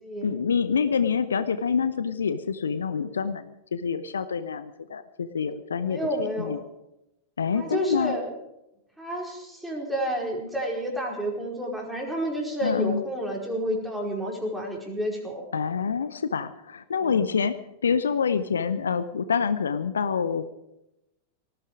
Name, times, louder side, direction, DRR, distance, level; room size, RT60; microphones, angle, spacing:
voice 1, 0.2-6.0 6.4-6.6 7.4-8.2 12.6-13.0 15.5-17.5 17.8-20.5, left 6 dB, 70° left, 13 dB, 0.8 m, -26 dB
voice 2, 5.8-6.6 7.5-8.3 9.0-15.4 17.0-17.2, equal, 5° right, -1 dB, 4.9 m, -30 dB
19.0 x 14.5 x 4.9 m, 0.87 s
figure-of-eight pair, 90°, 0 cm